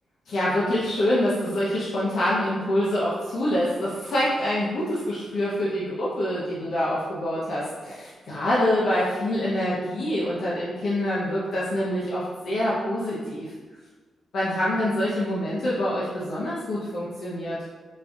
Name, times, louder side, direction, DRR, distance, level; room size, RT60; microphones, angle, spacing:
voice 1, 0.3-13.5 14.3-17.6, left 1 dB, 65° left, -7 dB, 0.7 m, -26 dB
5.2 x 2.3 x 2.6 m, 1.4 s
wide cardioid pair, 145°, 0 cm